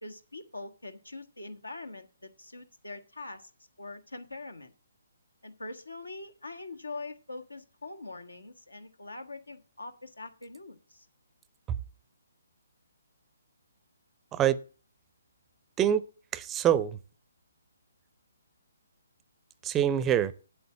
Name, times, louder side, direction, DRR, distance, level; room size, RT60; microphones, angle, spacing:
voice 1, 0.0-3.5 3.8-4.7 5.4-11.1, left 2 dB, 85° left, 1.4 m, -43 dB
voice 2, 16.3-17.0 19.6-20.3, right 10 dB, 15° right, 0.5 m, -25 dB
8.1 x 7.9 x 7.3 m
figure-of-eight pair, 135°, 0 cm